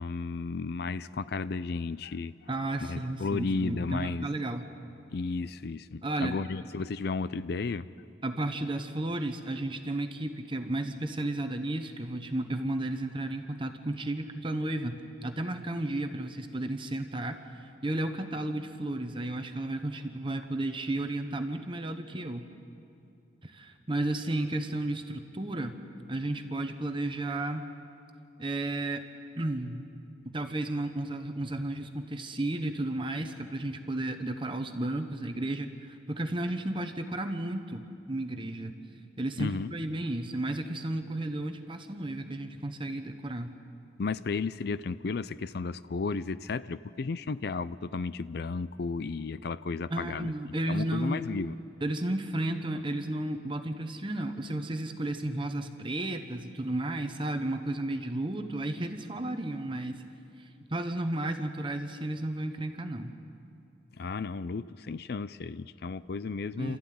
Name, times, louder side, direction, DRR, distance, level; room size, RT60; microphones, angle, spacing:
voice 1, 0.0-2.3 2.8-4.3 5.1-7.9 39.4-39.7 44.0-50.3 50.7-51.5 64.0-66.8, left 4 dB, 55° left, 15 dB, 0.4 m, -33 dB
voice 2, 2.5-4.7 6.0-6.4 8.2-22.5 23.4-25.8 26.1-27.7 28.4-29.0 29.4-29.9 30.3-38.8 39.2-43.5 49.9-51.3 51.8-60.0 60.4-63.1 66.6-66.8, right 1 dB, 25° right, 7 dB, 1.0 m, -33 dB
27.5 x 13.5 x 9.4 m, 2.6 s
head